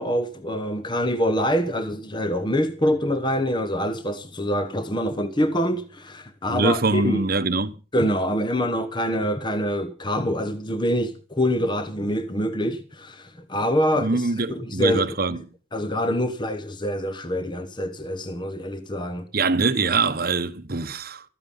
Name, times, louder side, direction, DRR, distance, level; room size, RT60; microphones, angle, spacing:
voice 1, 0.0-7.3 7.9-15.4 15.7-19.3, equal, 25° left, 1.1 m, -25 dB
voice 2, 6.5-7.7 14.0-15.4 19.3-21.2, right 3 dB, 50° right, 1.1 m, -23 dB
13.5 x 13.5 x 5.5 m
head